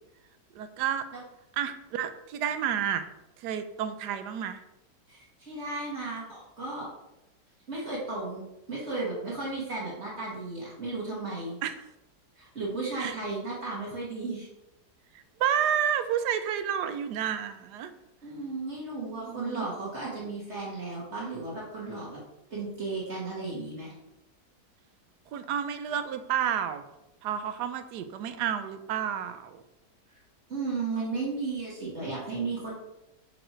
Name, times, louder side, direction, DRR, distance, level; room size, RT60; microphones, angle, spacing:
voice 1, 0.5-1.1 1.6-3.1 3.4-4.6 11.6-11.7 13.0-13.2 15.1-17.9 19.0-19.7 25.3-26.8 27.2-29.6, right 9 dB, 75° right, 10 dB, 1.1 m, -30 dB
voice 2, 5.1-6.9 7.7-11.6 12.4-14.5 18.2-22.2 22.5-23.9 30.5-32.7, right 3 dB, 40° right, -5 dB, 1.9 m, -34 dB
6.0 x 5.0 x 4.4 m, 0.91 s
omnidirectional pair, 1.9 m